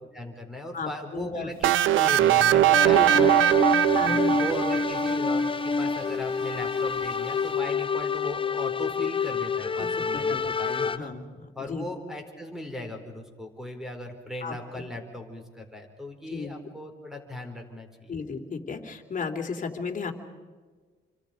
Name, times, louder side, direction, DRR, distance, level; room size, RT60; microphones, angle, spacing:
voice 1, 0.1-3.4 4.1-11.1 11.5-18.1, left 1 dB, ahead, 4 dB, 4.7 m, -38 dB
voice 2, 0.7-1.5 2.8-3.2 3.9-4.4 10.1-11.9 14.4-14.5 16.3-16.5 18.1-20.1, left 5 dB, 40° left, 3 dB, 3.1 m, -34 dB
sound 1, 1.6-5.4, right 12 dB, 85° right, 0.9 m, -21 dB
sound 2, 2.7-11.0, left 4 dB, 25° left, 0.8 m, -27 dB
28.0 x 25.0 x 5.2 m, 1.4 s
cardioid pair, 90°, 20 cm